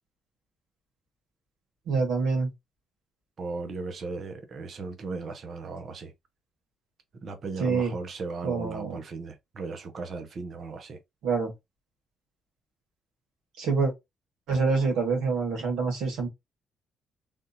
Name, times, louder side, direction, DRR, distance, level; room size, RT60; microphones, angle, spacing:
voice 1, 1.9-2.5 7.6-7.9 8.4-9.0 11.2-11.5 13.6-13.9 14.5-16.3, right 4 dB, 90° right, 1.6 m, -26 dB
voice 2, 3.4-6.1 7.2-11.0, right 3 dB, 50° right, 0.8 m, -36 dB
3.5 x 2.5 x 2.7 m
cardioid pair, 90°, 0 cm